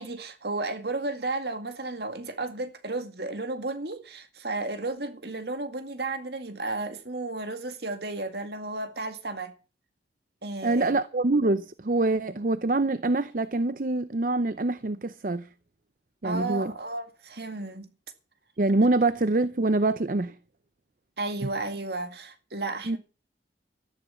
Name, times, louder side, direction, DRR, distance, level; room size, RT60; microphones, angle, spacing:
voice 1, 0.0-9.5 10.4-11.0 16.2-17.9 21.2-23.0, right 2 dB, 60° right, 2.1 m, -33 dB
voice 2, 10.6-15.5 16.2-16.7 18.6-20.4 21.4-21.5 22.9-23.0, right 2 dB, 45° right, 0.6 m, -25 dB
13.0 x 11.0 x 6.9 m
head